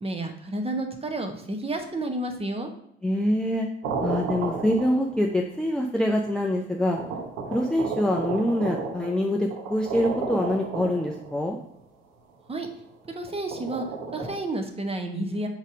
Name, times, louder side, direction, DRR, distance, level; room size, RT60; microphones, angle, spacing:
voice 1, 0.0-2.7 12.5-12.7 13.1-13.8 14.1-15.5, right 2 dB, 20° right, 5 dB, 1.0 m, -30 dB
voice 2, 3.0-3.7 4.0-7.0 7.5-11.6, left 1 dB, 5° left, 1 dB, 0.6 m, -25 dB
sound 1, 3.8-5.4 6.3-6.4 7.0-11.5 13.3-14.3, right 4 dB, 60° right, 1.2 m, -33 dB
4.8 x 4.1 x 5.1 m, 0.74 s
figure-of-eight pair, 55°, 30 cm